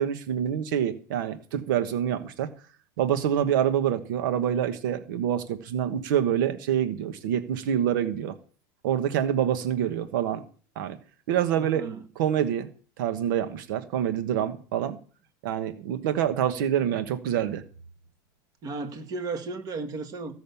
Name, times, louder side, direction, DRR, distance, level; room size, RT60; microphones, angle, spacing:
voice 1, 0.0-2.5 3.0-8.3 8.8-10.4 10.7-11.0 11.3-11.8 12.1-12.7 13.0-15.0 15.4-17.6, right 10 dB, 80° right, 1.3 m, -26 dB
voice 2, 11.5-12.0 18.6-20.3, right 3 dB, 35° right, 2.0 m, -34 dB
15.5 x 6.3 x 7.0 m
supercardioid pair, 155°, 11 cm